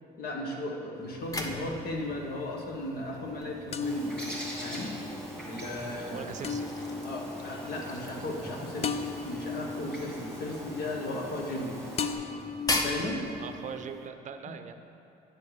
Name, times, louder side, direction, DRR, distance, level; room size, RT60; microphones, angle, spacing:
voice 1, 0.2-4.2 4.6-4.9 5.5-6.3 7.0-11.7 12.7-13.2, left 1 dB, 65° left, 0 dB, 1.6 m, -36 dB
sound 1, 0.9-14.0, left 1 dB, 20° left, 0.8 m, -40 dB
sound 2, 1.2-2.1 3.7-11.7 12.0-14.1, left 5 dB, 40° left, 0.4 m, -38 dB
Bird, 3.8-12.1, equal, 5° left, 2.1 m, -42 dB
voice 2, 6.0-6.7 13.4-14.7, right 7 dB, 45° right, 8 dB, 0.6 m, -41 dB
9.7 x 7.1 x 4.9 m, 2.7 s
cardioid pair, 110°, 17 cm